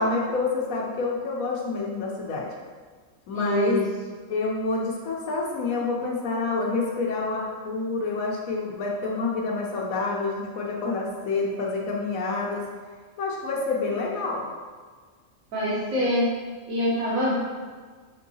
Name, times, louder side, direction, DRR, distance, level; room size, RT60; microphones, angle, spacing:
voice 1, 0.0-2.5 3.3-3.8 4.3-12.7 13.2-14.4, left 3 dB, 85° left, -1 dB, 1.1 m, -28 dB
voice 2, 3.3-3.8 15.5-16.3 16.7-17.3, equal, 85° right, -7 dB, 1.2 m, -24 dB
5.8 x 2.7 x 2.7 m, 1.5 s
omnidirectional pair, 1.4 m